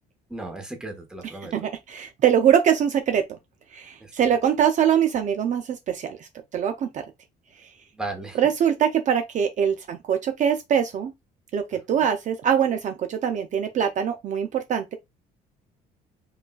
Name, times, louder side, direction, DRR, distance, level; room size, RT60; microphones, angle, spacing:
voice 1, 0.3-1.5 4.0-4.3 7.9-8.4 11.7-11.8, right 2 dB, 5° right, 1.0 m, -36 dB
voice 2, 1.5-3.2 3.7-7.0 7.6-7.7 8.3-11.1 11.5-15.0, right 8 dB, 45° right, 0.5 m, -23 dB
5.2 x 2.4 x 2.3 m
cardioid pair, 110°, 17 cm